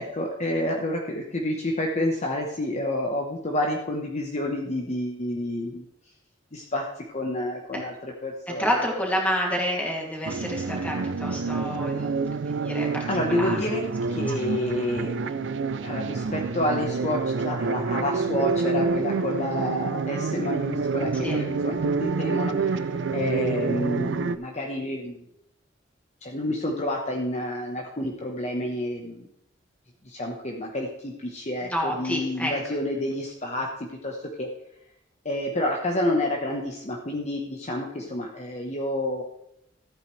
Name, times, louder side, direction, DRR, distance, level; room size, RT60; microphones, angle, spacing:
voice 1, 0.0-5.8 6.5-8.8 13.1-13.8 14.1-25.3 26.2-29.3 30.0-33.7 34.0-34.5 35.2-39.2, left 1 dB, 35° left, 0 dB, 1.1 m, -29 dB
voice 2, 8.6-13.0 13.3-13.6 14.3-14.4 15.2-15.4 21.2-21.4 31.6-32.5, equal, 10° left, -2 dB, 2.5 m, -29 dB
sound 1, 10.2-24.4, right 4 dB, 70° right, 0.5 m, -28 dB
14.0 x 8.9 x 3.3 m, 0.78 s
head